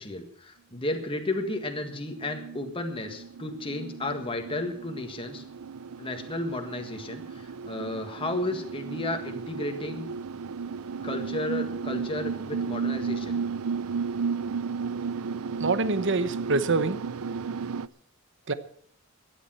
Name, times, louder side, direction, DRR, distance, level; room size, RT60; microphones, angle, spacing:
voice 1, 0.0-5.4 6.0-10.1 11.0-13.4, left 2 dB, 25° left, 4 dB, 1.7 m, -33 dB
sound 1, 1.2-17.9, right 5 dB, 90° right, 0.5 m, -34 dB
voice 2, 15.6-17.0 18.5-18.6, right 3 dB, 60° right, 13 dB, 0.9 m, -25 dB
13.5 x 10.0 x 7.6 m, 0.64 s
head